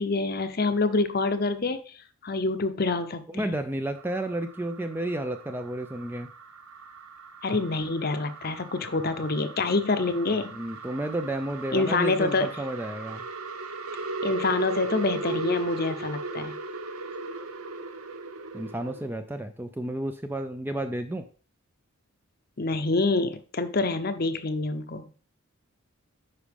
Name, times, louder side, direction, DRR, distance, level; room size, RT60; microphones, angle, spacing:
voice 1, 0.0-2.0 2.2-3.5 7.4-10.6 11.7-12.5 14.2-16.5 22.6-25.1, left 3 dB, 45° left, 10 dB, 0.7 m, -26 dB
voice 2, 3.3-6.3 10.5-13.2 18.5-21.3, right 1 dB, 10° right, 8 dB, 0.4 m, -31 dB
sound 1, 4.0-19.1, right 3 dB, 80° right, 0.8 m, -38 dB
9.7 x 5.0 x 3.5 m, 0.39 s
head